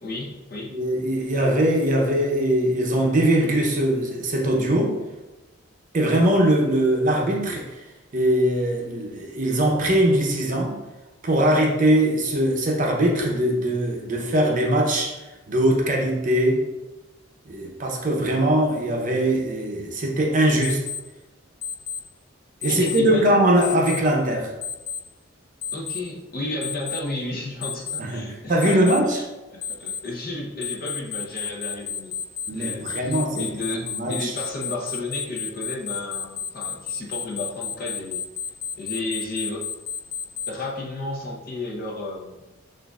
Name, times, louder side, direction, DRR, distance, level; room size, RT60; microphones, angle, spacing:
voice 1, 0.0-0.7 22.7-23.4 25.7-29.2 29.5-32.1 32.5-38.2 38.8-39.7 40.5-42.4, left 2 dB, 45° left, -2 dB, 0.7 m, -32 dB
voice 2, 0.7-5.0 5.9-7.8 8.1-10.7 11.2-15.2 15.5-16.6 17.5-20.8 22.6-24.5 28.0-29.2 32.5-33.4 33.8-34.3, right 1 dB, 40° right, 0 dB, 0.6 m, -21 dB
Alarm, 20.6-21.0 21.6-22.0 22.6-23.0 23.6-24.0 24.6-25.0 25.6-26.0 26.6-27.0 27.6-28.0 28.6-29.0 29.6-30.0 30.6-40.5, left 7 dB, 85° left, 0.4 m, -31 dB
6.2 x 2.5 x 2.3 m, 1.1 s
head